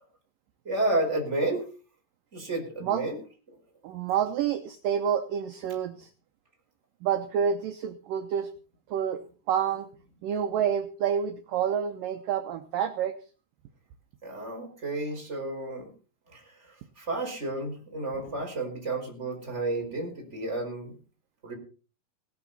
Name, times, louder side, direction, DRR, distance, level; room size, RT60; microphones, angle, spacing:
voice 1, 0.6-1.7 2.3-3.2 14.2-15.9 16.3-16.4 17.0-20.9 21.4-21.5, right 2 dB, 15° right, 1 dB, 4.6 m, -31 dB
voice 2, 3.8-6.1 7.0-8.5 8.9-9.9 10.2-13.2, right 8 dB, 85° right, 7 dB, 1.9 m, -28 dB
18.0 x 13.0 x 4.1 m, 0.36 s
omnidirectional pair, 5.2 m